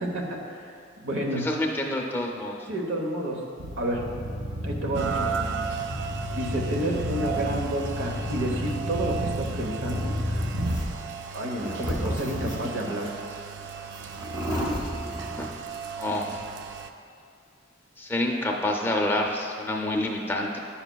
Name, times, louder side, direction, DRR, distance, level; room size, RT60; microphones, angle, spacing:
voice 1, 0.0-1.5 2.7-3.4 3.8-4.0 4.6-5.4 6.3-10.1 11.3-13.1, right 1 dB, 85° right, 0 dB, 0.9 m, -30 dB
voice 2, 1.4-2.6 15.4-15.5 16.0-16.4 18.0-20.6, left 1 dB, 10° left, 0 dB, 0.5 m, -28 dB
sound 1, 3.6-11.0 11.5-12.9 13.6-13.7 13.9-15.5, equal, 25° right, 0.8 m, -31 dB
Rain, 4.9-16.9, right 7 dB, 60° right, 0.3 m, -36 dB
9.9 x 5.6 x 2.2 m, 2.4 s
head